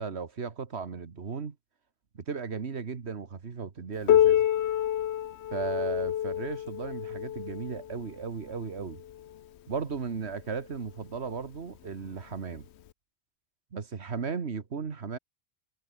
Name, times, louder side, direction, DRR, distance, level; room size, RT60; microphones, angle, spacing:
voice 1, 0.0-1.6 2.3-4.4 5.5-9.0 9.7-12.7 13.7-15.2, right 5 dB, 85° right, 1.8 m, -36 dB
Piano, 4.1-9.4 10.3-10.4 10.9-11.0 11.7-11.8 12.9-13.0, left 11 dB, 85° left, 1.0 m, -27 dB
omnidirectional pair, 1.1 m